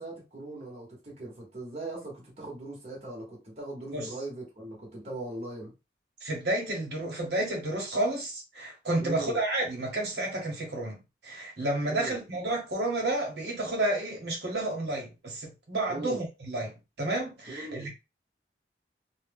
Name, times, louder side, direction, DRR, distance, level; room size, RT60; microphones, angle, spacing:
voice 1, 0.0-5.7 9.0-9.4 11.9-12.2 15.9-16.2 17.5-17.9, right 2 dB, 35° right, 1.0 m, -40 dB
voice 2, 6.2-17.9, right 1 dB, 70° right, 1.0 m, -31 dB
2.7 x 2.1 x 3.4 m
head